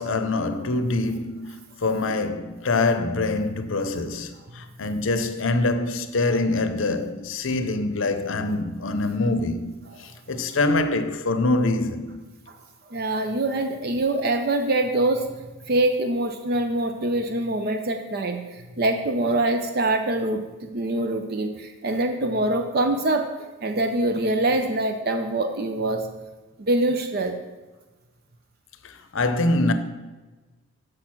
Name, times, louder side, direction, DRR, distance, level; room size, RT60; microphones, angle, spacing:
voice 1, 0.0-12.2 28.8-29.7, left 2 dB, 70° left, 0.7 m, -25 dB
voice 2, 12.9-15.3 15.7-23.3 23.6-26.1 26.6-27.4, right 2 dB, 45° right, 0.5 m, -24 dB
6.6 x 6.3 x 5.9 m
head